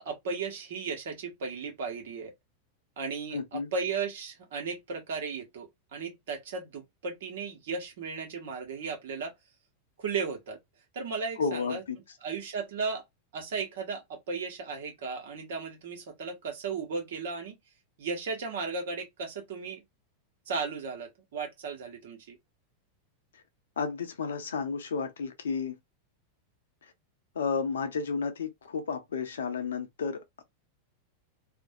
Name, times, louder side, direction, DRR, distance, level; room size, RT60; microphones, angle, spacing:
voice 1, 0.0-2.3 3.0-9.3 10.0-10.6 10.9-11.8 12.2-13.0 13.3-17.6 18.0-19.8 20.5-22.4, right 5 dB, 60° right, 1.1 m, -35 dB
voice 2, 3.3-3.7 11.4-12.0 23.3-23.4 23.8-25.8 27.3-30.4, left 5 dB, 65° left, 0.6 m, -32 dB
2.5 x 2.1 x 2.7 m
figure-of-eight pair, 90°, 0 cm